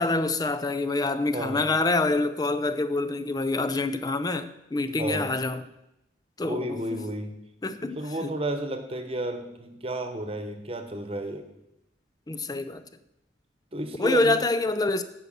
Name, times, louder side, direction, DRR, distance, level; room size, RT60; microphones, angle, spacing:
voice 1, 0.0-5.6 6.4-7.1 7.6-8.3 12.3-12.8 14.0-15.0, left 2 dB, 20° left, 0.4 m, -26 dB
voice 2, 1.3-1.7 4.9-5.3 6.4-7.3 7.8-11.4 13.7-14.4, right 1 dB, 30° right, 1.1 m, -32 dB
10.0 x 6.6 x 6.6 m
head